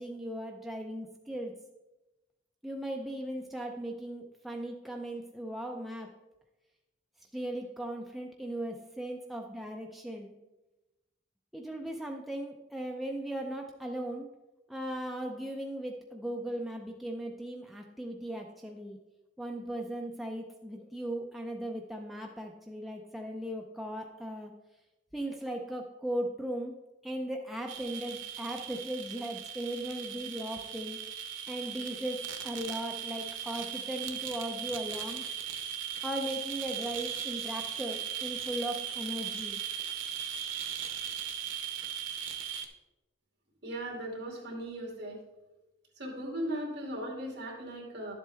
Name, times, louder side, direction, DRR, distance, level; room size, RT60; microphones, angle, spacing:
voice 1, 0.0-1.5 2.6-6.1 7.3-10.3 11.5-14.3 14.7-19.0 19.4-24.5 25.1-26.7 27.0-31.0 31.5-35.2 36.0-39.6, right 1 dB, ahead, 0 dB, 0.5 m, -37 dB
sound 1, 27.7-42.6, right 8 dB, 85° right, 0.9 m, -38 dB
voice 2, 43.6-45.2 46.0-48.1, right 1 dB, 60° right, -1 dB, 2.4 m, -38 dB
11.0 x 7.5 x 3.4 m, 1.0 s
head